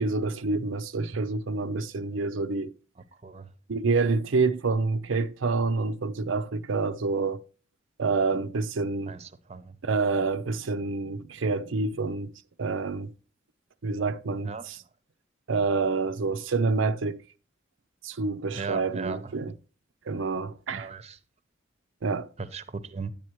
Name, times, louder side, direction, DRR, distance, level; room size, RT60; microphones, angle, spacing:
voice 1, 0.0-2.7 3.7-7.4 8.0-9.2 9.8-12.3 12.6-13.1 13.8-14.8 15.5-17.2 18.0-19.5 20.1-20.9 22.0-22.3, right 4 dB, 85° right, 0.6 m, -27 dB
voice 2, 9.1-9.7 14.4-14.7 18.5-19.3 20.7-21.2 22.4-23.1, right 5 dB, 35° right, 0.7 m, -37 dB
10.5 x 8.7 x 3.0 m
head